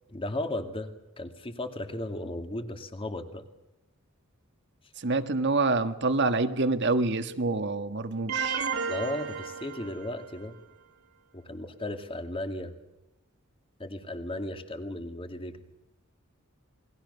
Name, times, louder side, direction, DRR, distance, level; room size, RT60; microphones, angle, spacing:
voice 1, 0.1-0.9 1.2-3.4 8.9-10.6 11.3-12.7 13.8-15.6, left 1 dB, 25° left, 7 dB, 2.2 m, -35 dB
voice 2, 5.0-8.6, right 3 dB, 55° right, 9 dB, 1.5 m, -27 dB
sound 1, 8.3-10.4, right 6 dB, 75° right, 2.7 m, -33 dB
28.5 x 21.0 x 6.8 m, 0.97 s
head